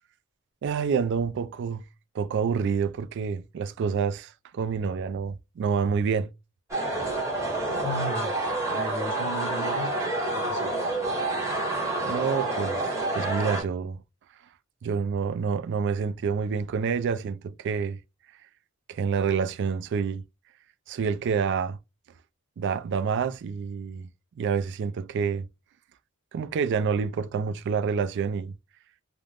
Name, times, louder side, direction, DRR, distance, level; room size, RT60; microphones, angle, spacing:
voice 1, 0.6-1.8 2.1-6.3 12.0-14.0 14.8-18.0 18.9-20.2 20.9-21.8 22.6-24.1 24.4-25.5 26.3-28.5, right 6 dB, 55° right, 0.3 m, -28 dB
sound 1, 6.7-13.6, right 2 dB, 15° right, 0.9 m, -28 dB
voice 2, 7.6-11.6, left 1 dB, 75° left, 1.0 m, -37 dB
2.5 x 2.1 x 3.2 m
head